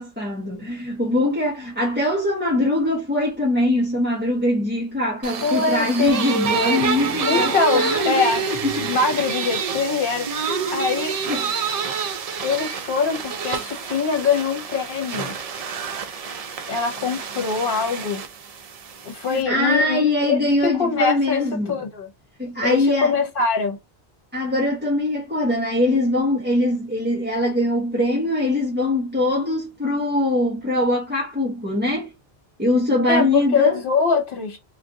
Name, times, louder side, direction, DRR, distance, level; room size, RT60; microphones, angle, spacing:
voice 1, 0.0-8.9 10.5-10.8 11.3-11.4 19.3-21.8 22.4-23.1 24.3-32.1 32.6-33.8, left 1 dB, 10° right, 0.7 m, -22 dB
sound 1, 5.2-19.4, right 5 dB, 50° right, 0.4 m, -28 dB
voice 2, 5.4-6.3 7.3-8.4 8.8-11.2 12.4-15.3 16.7-18.2 19.0-21.4 21.7-22.1 22.6-23.8 33.1-34.6, left 5 dB, 55° left, 1.1 m, -23 dB
2.5 x 2.3 x 3.6 m
omnidirectional pair, 1.1 m